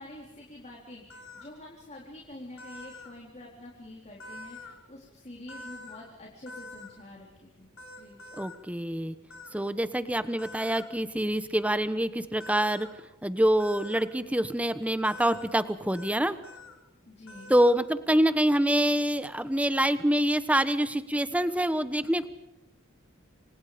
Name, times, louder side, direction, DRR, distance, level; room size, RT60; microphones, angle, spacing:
voice 1, 0.0-7.7 7.9-8.2 17.1-17.5, left 1 dB, 35° left, -1 dB, 4.1 m, -47 dB
sound 1, 1.1-1.4 2.6-3.1 4.2-4.7 5.5-6.0 6.5-6.9 7.8-8.6 9.3-9.5 10.4-10.9 12.4-12.9 13.6-14.0 15.0-15.5 15.9-16.2 16.4-16.7 17.3-17.8, left 2 dB, 90° left, 4.7 m, -45 dB
voice 2, 8.4-9.1 9.5-12.9 13.2-16.4 17.5-22.3, right 1 dB, 5° right, 12 dB, 1.1 m, -26 dB
28.5 x 26.0 x 5.2 m, 0.94 s
head